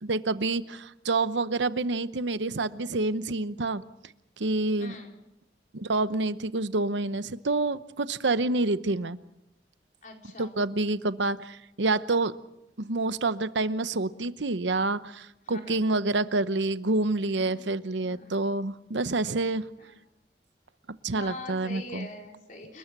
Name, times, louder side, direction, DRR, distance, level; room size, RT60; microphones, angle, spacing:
voice 1, 0.0-3.8 4.4-5.0 5.7-9.2 10.4-12.4 12.8-19.6 21.0-22.1, right 2 dB, 90° right, 13 dB, 0.9 m, -28 dB
voice 2, 4.8-5.1 10.0-10.5 15.5-15.8 17.3-17.6 18.0-18.3 19.8-19.9 21.0-22.8, left 2 dB, 45° left, 1 dB, 4.5 m, -43 dB
29.0 x 19.5 x 6.1 m, 0.86 s
head